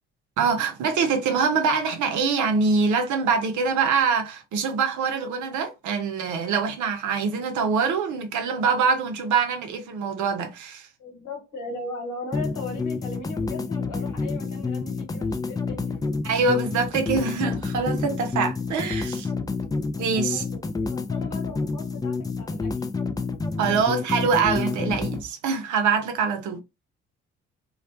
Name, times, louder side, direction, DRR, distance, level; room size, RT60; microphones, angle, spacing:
voice 1, 0.4-10.9 16.2-19.3 20.0-20.4 23.6-26.6, right 5 dB, 60° right, 0.7 m, -24 dB
voice 2, 11.0-16.0 20.1-22.7, left 3 dB, 60° left, 1.3 m, -38 dB
sound 1, 12.3-25.2, left 4 dB, 10° left, 0.3 m, -29 dB
2.3 x 2.1 x 2.5 m
hypercardioid pair, 50°, 34 cm